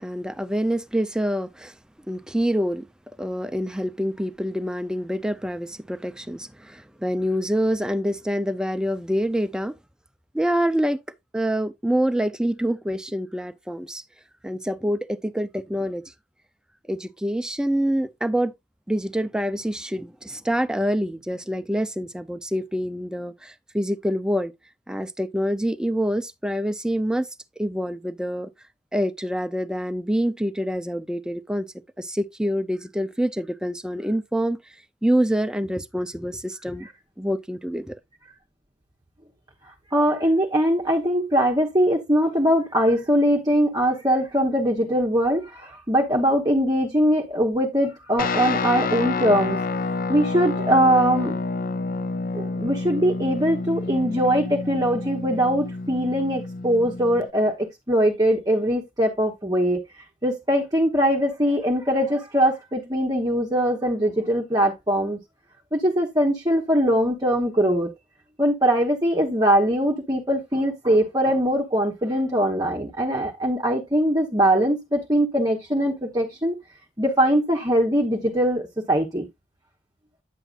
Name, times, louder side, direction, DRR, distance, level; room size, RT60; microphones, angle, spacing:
voice 1, 0.0-1.7 2.1-2.9 3.2-9.7 10.3-11.0 11.3-14.0 14.4-16.0 16.9-18.5 18.9-24.5 24.9-27.3 27.6-28.5 28.9-31.7 32.0-34.6 35.0-36.9 37.2-38.0, equal, 5° right, 0.5 m, -26 dB
voice 2, 39.9-49.6 50.1-51.4 52.3-59.8 60.2-65.2 65.7-67.9 68.4-76.6 77.0-79.3, equal, 20° right, 1.0 m, -21 dB
Guitar, 48.2-57.3, left 3 dB, 50° left, 0.5 m, -28 dB
9.2 x 7.6 x 2.5 m
head